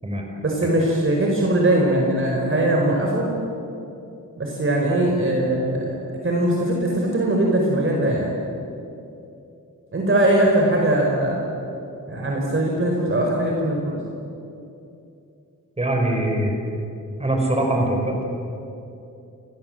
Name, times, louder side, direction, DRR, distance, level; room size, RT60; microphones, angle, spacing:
voice 1, 0.4-3.2 4.4-5.9 6.2-8.3 9.9-11.4 12.1-13.9, right 1 dB, 40° right, -1 dB, 4.6 m, -20 dB
voice 2, 15.8-16.5 17.2-18.2, right 1 dB, 20° right, 1 dB, 5.7 m, -22 dB
29.5 x 25.0 x 7.8 m, 2.7 s
wide cardioid pair, 155°, 34 cm